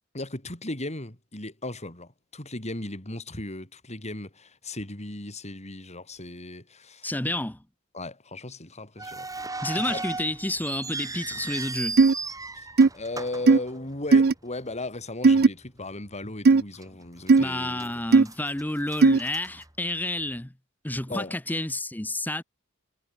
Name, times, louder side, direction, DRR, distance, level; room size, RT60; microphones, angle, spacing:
voice 1, 0.1-7.1 7.9-9.3 9.7-10.0 12.6-12.7 12.9-18.0 21.1-21.4, left 2 dB, 30° left, 5.7 m, -36 dB
voice 2, 7.0-7.6 9.6-12.0 17.4-20.5 20.8-22.4, left 1 dB, 10° left, 0.8 m, -30 dB
sound 1, 9.0-14.3 14.6-14.7 15.4-15.7 16.1-16.2 16.8-17.4 17.8-20.2, right 3 dB, 15° right, 6.2 m, -36 dB
sound 2, 12.0-12.1 12.8-12.9 13.5-13.6 14.1-14.3 15.2-15.5 16.5-16.6 17.3-17.4 18.1-18.2 19.0-19.2, right 4 dB, 45° right, 0.5 m, -15 dB
head